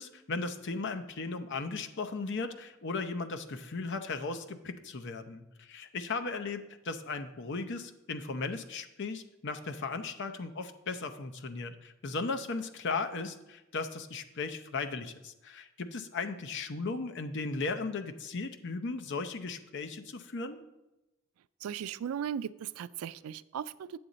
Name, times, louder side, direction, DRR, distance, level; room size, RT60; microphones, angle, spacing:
voice 1, 0.0-20.6, left 3 dB, 55° left, 8 dB, 0.7 m, -36 dB
voice 2, 21.6-24.0, right 8 dB, 90° right, 17 dB, 0.3 m, -37 dB
8.7 x 7.5 x 4.0 m, 0.95 s
head